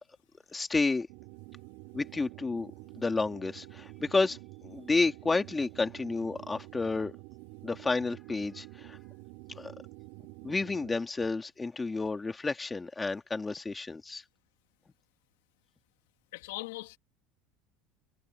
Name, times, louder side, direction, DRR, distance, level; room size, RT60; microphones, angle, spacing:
voice 1, 0.5-1.1 1.9-7.1 7.6-9.0 9.6-9.7 10.4-14.2, left 3 dB, 15° left, 2.3 m, -31 dB
sound 1, 1.1-10.9, right 23 dB, 70° right, 3.0 m, -49 dB
voice 2, 16.3-17.0, left 20 dB, 85° left, 2.8 m, -40 dB
supercardioid pair, 120°, 0 cm